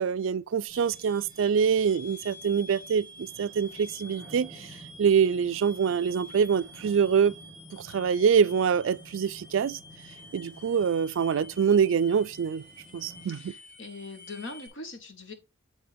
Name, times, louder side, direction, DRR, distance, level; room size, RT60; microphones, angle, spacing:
voice 1, 0.0-4.7 5.0-7.3 7.7-9.8 10.3-12.6 12.9-13.5, right 7 dB, 75° right, 0.3 m, -25 dB
sound 1, 0.7-14.7, left 1 dB, 45° left, 1.6 m, -49 dB
sound 2, 0.7-13.3, right 1 dB, 5° right, 1.5 m, -53 dB
voice 2, 13.2-15.3, left 3 dB, 70° left, 1.4 m, -42 dB
10.0 x 3.7 x 3.4 m
head